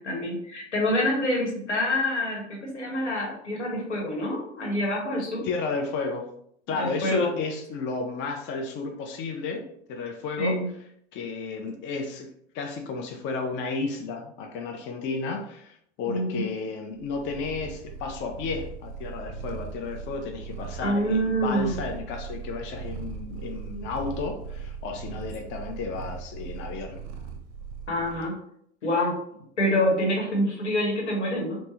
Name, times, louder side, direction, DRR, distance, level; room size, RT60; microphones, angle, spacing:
voice 1, 0.0-5.4 6.7-7.3 10.4-10.7 16.1-16.5 20.8-21.8 27.9-28.3 28.8-29.1 29.6-31.6, equal, 85° left, -1 dB, 1.0 m, -26 dB
voice 2, 5.4-6.3 6.7-10.6 11.1-12.3 12.5-27.0, left 4 dB, 35° left, 3 dB, 0.5 m, -32 dB
Purr, 17.0-28.3, right 6 dB, 45° right, 0.6 m, -39 dB
3.2 x 2.1 x 2.8 m, 0.70 s
figure-of-eight pair, 80°, 34 cm